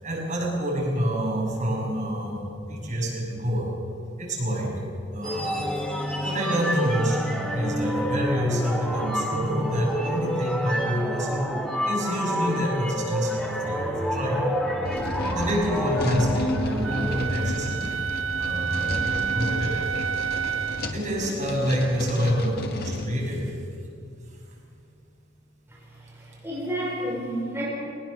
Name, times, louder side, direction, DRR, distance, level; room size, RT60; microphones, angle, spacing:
voice 1, 0.0-3.7 4.2-4.8 5.1-5.7 6.2-11.5 11.8-14.4 15.3-17.9 18.3-19.9 20.9-23.5, equal, 40° right, -3 dB, 6.6 m, -27 dB
sound 1, 5.2-17.2, equal, 5° left, 2.6 m, -29 dB
sound 2, 14.8-23.1, left 1 dB, 55° left, 1.6 m, -32 dB
Wind instrument woodwind instrument, 16.8-21.0, right 7 dB, 80° right, 0.5 m, -29 dB
voice 2, 25.7-27.7, right 1 dB, 10° right, -6 dB, 4.7 m, -31 dB
21.5 x 20.0 x 6.8 m, 2.5 s
head